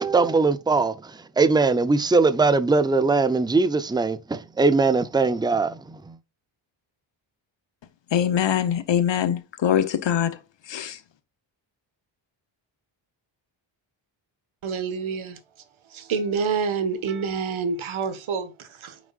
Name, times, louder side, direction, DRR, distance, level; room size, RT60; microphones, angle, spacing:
voice 1, 0.0-6.2, right 3 dB, 10° right, 0.5 m, -21 dB
voice 2, 8.1-10.4 10.7-11.0, left 9 dB, 65° left, 1.0 m, -23 dB
voice 3, 14.6-15.4 15.9-19.0, right 5 dB, 80° right, 1.6 m, -27 dB
9.0 x 6.3 x 2.4 m
wide cardioid pair, 140°, 47 cm